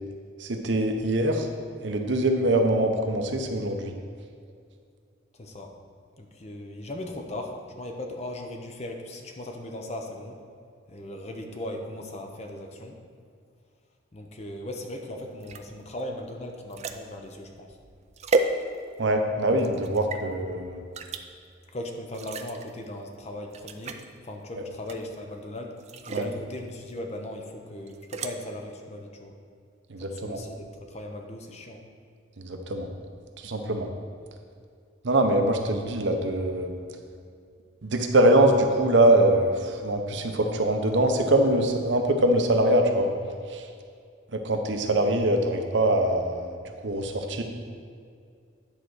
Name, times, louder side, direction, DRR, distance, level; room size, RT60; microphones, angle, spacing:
voice 1, 0.4-1.5 1.8-3.9 19.0-20.8 26.1-26.3 29.9-30.4 32.4-32.9 33.4-33.9 35.0-36.7 37.8-43.1 43.5-43.6 44.3-46.6 46.8-47.4, right 1 dB, 65° right, 4 dB, 0.8 m, -23 dB
voice 2, 5.3-5.7 6.2-10.4 10.9-13.0 14.1-17.8 21.7-25.8 26.1-29.3 30.0-31.8, left 1 dB, 35° left, 3 dB, 0.8 m, -38 dB
sound 1, 15.4-19.1 19.6-20.2 20.9-21.2 22.1-22.7 23.1-23.2 23.5-24.1 24.9-25.3 25.8-26.4 27.9-28.3, right 3 dB, 35° right, 0.4 m, -32 dB
10.0 x 4.0 x 6.3 m, 2.2 s
head